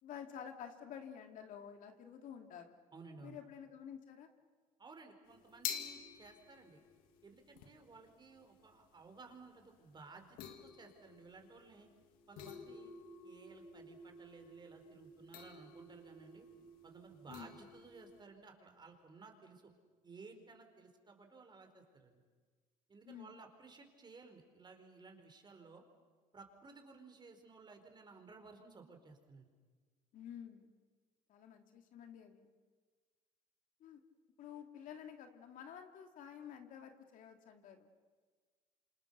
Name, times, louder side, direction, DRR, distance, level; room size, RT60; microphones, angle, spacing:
voice 1, 0.0-2.7 3.2-4.3 17.3-17.5 23.1-23.3 30.1-30.7 31.3-32.5 33.8-34.0 34.4-37.9, left 8 dB, 70° left, 5 dB, 2.6 m, -51 dB
voice 2, 2.9-3.4 4.8-6.8 7.2-11.9 12.3-12.9 13.2-16.5 16.8-19.7 20.0-22.2 22.9-25.8 26.3-29.5, right 4 dB, 30° right, 5 dB, 4.5 m, -57 dB
sound 1, 5.3-18.2, left 7 dB, 85° left, 2.1 m, -50 dB
28.0 x 27.5 x 6.8 m, 1.5 s
cardioid pair, 95°, 14 cm